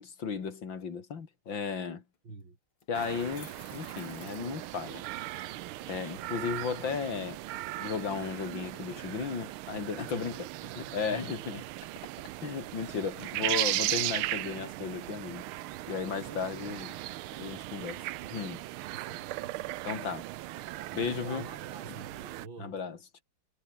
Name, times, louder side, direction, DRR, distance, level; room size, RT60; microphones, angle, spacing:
voice 1, 0.0-2.0 2.9-5.0 5.8-7.4 7.8-11.6 12.4-15.4 15.9-16.9 17.3-18.0 18.3-18.6 19.8-20.3 20.9-21.5 22.6-23.2, left 6 dB, 65° left, 3.0 m, -35 dB
sound 1, 2.1-2.2 2.8-5.3, left 6 dB, 85° left, 3.5 m, -54 dB
voice 2, 2.2-2.6 11.1-11.2 16.3-16.8 18.9-19.8 21.1-22.9, right 3 dB, 65° right, 5.2 m, -48 dB
sound 2, 2.9-22.5, right 16 dB, 90° right, 1.5 m, -37 dB
omnidirectional pair, 2.3 m